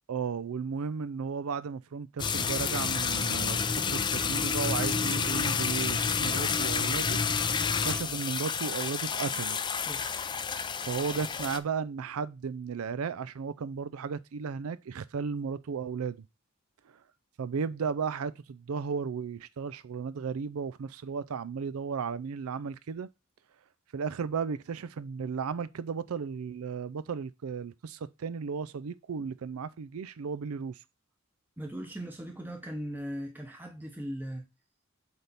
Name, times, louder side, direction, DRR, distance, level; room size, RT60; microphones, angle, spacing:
voice 1, 0.1-7.2 7.8-9.6 10.8-16.2 16.9-17.0 17.4-23.1 23.9-30.8, right 5 dB, 80° right, 0.4 m, -34 dB
sound 1, 2.2-11.6, left 6 dB, 20° left, 0.4 m, -29 dB
voice 2, 9.8-10.1 31.6-34.5, equal, 10° right, 0.8 m, -39 dB
8.1 x 3.5 x 4.0 m
head